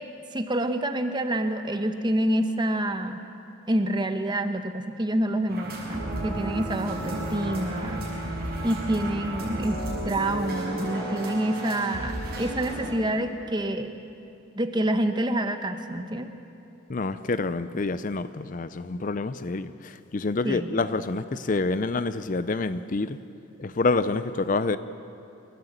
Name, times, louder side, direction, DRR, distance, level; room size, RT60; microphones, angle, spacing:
voice 1, 0.3-3.2 3.7-8.4 8.6-13.9 14.6-16.3 20.4-20.8, right 1 dB, 20° right, 7 dB, 1.0 m, -27 dB
sound 1, 5.5-12.9, right 1 dB, 45° right, 6.6 m, -33 dB
voice 2, 16.9-19.7 20.1-23.2 23.6-24.8, left 3 dB, 40° left, 13 dB, 0.5 m, -27 dB
28.0 x 14.0 x 8.0 m, 2.7 s
head